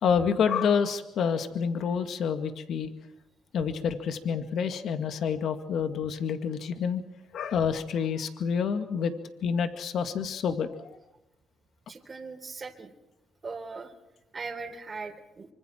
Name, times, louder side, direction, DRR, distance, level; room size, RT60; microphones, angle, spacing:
voice 1, 0.0-2.9 3.5-7.0 7.3-9.1 9.4-10.8, left 6 dB, 70° left, 7 dB, 2.1 m, -28 dB
voice 2, 11.9-12.9 13.4-13.9 14.3-15.5, right 4 dB, 35° right, 3 dB, 3.5 m, -39 dB
26.0 x 25.0 x 4.5 m, 0.95 s
cardioid pair, 90°, 0 cm